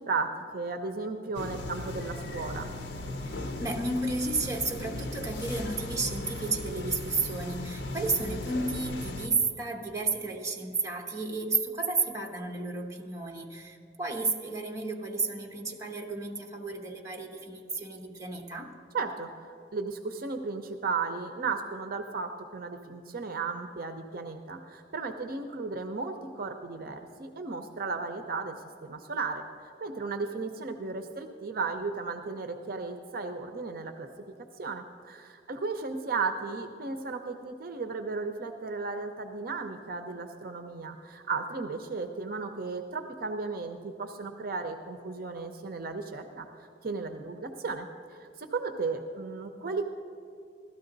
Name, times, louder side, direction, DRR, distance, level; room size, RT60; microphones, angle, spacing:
voice 1, 0.0-2.7 18.9-28.6 28.8-34.1 34.6-46.5 46.8-49.8, right 4 dB, 55° right, 6 dB, 0.6 m, -35 dB
sound 1, 1.3-9.3, left 2 dB, 75° left, 0.7 m, -37 dB
voice 2, 3.2-18.8, right 3 dB, 20° right, 0 dB, 1.1 m, -32 dB
16.0 x 12.5 x 3.9 m, 2.4 s
head